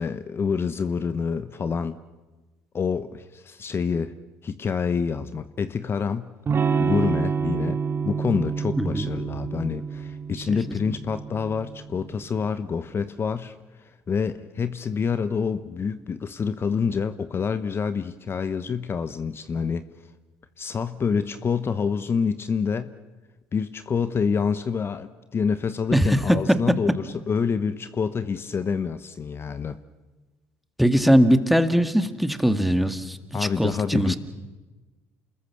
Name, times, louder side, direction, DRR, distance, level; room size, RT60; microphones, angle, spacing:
voice 1, 0.0-2.0 2.7-4.1 4.4-6.3 6.8-19.9 20.6-22.9 23.5-29.8 33.3-34.1, left 6 dB, 35° left, 12 dB, 1.0 m, -27 dB
Electric guitar / Strum, 6.5-12.2, right 6 dB, 40° right, 2.4 m, -28 dB
voice 2, 8.8-9.1 25.9-26.6 30.8-34.2, equal, ahead, 9 dB, 1.9 m, -21 dB
28.5 x 20.5 x 7.1 m, 1.2 s
hypercardioid pair, 70°, 7 cm